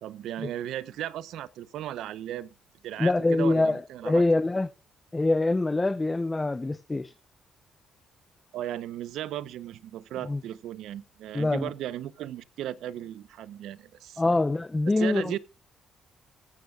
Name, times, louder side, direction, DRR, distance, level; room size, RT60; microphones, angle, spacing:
voice 1, 0.0-2.5 2.8-4.2 8.5-14.2 15.0-15.4, right 12 dB, 80° right, 0.8 m, -36 dB
voice 2, 3.0-4.7 5.1-7.1 10.3-10.4 11.3-11.7 14.2-15.3, left 2 dB, 20° left, 0.7 m, -24 dB
14.5 x 14.5 x 2.4 m
cardioid pair, 90°, 0 cm